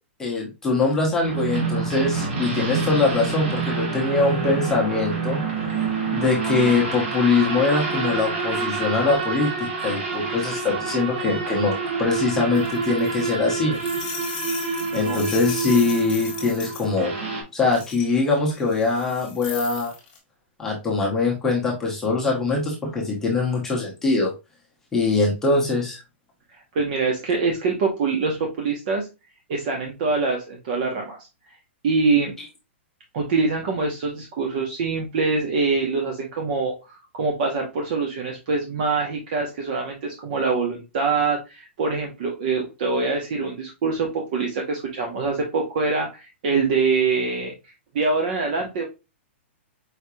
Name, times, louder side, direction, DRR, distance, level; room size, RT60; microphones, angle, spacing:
voice 1, 0.2-5.4 6.1-13.8 14.9-17.1 17.5-19.9 20.6-24.3 24.9-26.0, left 3 dB, 5° left, -4 dB, 0.9 m, -23 dB
sound 1, 1.2-17.4, right 4 dB, 55° right, 1.8 m, -27 dB
sound 2, 12.5-16.9 17.7-20.2, left 7 dB, 25° left, 1.6 m, -37 dB
voice 2, 14.9-15.2 26.5-29.1 29.5-31.2 31.8-32.3 33.1-36.7 37.1-47.5 47.9-48.8, right 4 dB, 40° right, 2 dB, 0.9 m, -24 dB
4.8 x 3.2 x 2.7 m, 0.26 s
hypercardioid pair, 170°, 7 cm